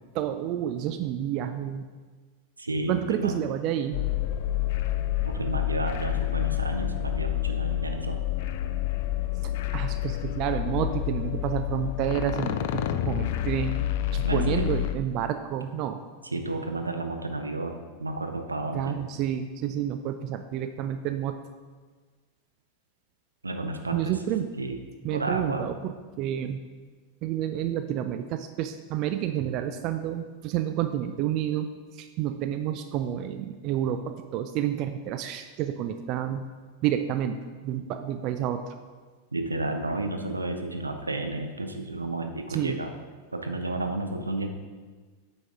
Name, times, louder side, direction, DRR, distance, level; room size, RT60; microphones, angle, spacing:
voice 1, 0.1-1.9 2.9-4.0 9.4-13.7 14.1-16.0 18.7-21.3 23.9-24.5 25.0-26.6 27.2-31.7 31.9-36.4 36.8-37.4 37.6-38.7 42.5-42.8, right 10 dB, 40° right, 8 dB, 0.4 m, -29 dB
voice 2, 2.6-3.4 5.2-8.2 14.2-14.7 16.3-19.0 23.4-24.1 24.6-24.8 25.1-25.7 39.3-42.9 43.3-44.5, right 2 dB, 80° right, 5 dB, 0.7 m, -31 dB
sound 1, 3.9-14.9, left 13 dB, 50° left, 0.4 m, -28 dB
9.1 x 6.0 x 3.7 m, 1.4 s
figure-of-eight pair, 90°, 0 cm